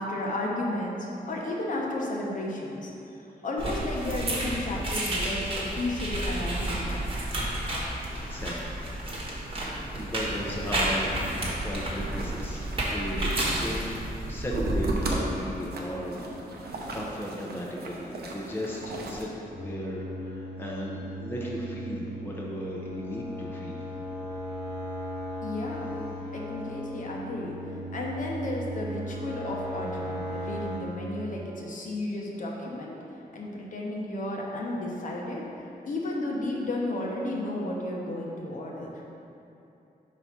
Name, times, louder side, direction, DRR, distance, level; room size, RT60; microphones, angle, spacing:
voice 1, 0.0-2.9 3.4-7.0 25.4-26.0 26.3-27.6 27.9-33.0 33.3-35.5 35.8-38.9, left 1 dB, 55° left, -2 dB, 0.9 m, -33 dB
sound 1, 3.6-15.2, right 1 dB, 35° right, 1.2 m, -31 dB
voice 2, 8.2-9.4 9.9-14.0 14.2-16.2 16.5-23.9, equal, 15° left, -4 dB, 0.6 m, -36 dB
sound 2, 10.0-19.2, right 2 dB, 80° right, 0.7 m, -36 dB
sound 3, 19.5-30.8, equal, 10° right, 1.3 m, -37 dB
4.8 x 4.1 x 5.8 m, 2.8 s
wide cardioid pair, 150°, 16 cm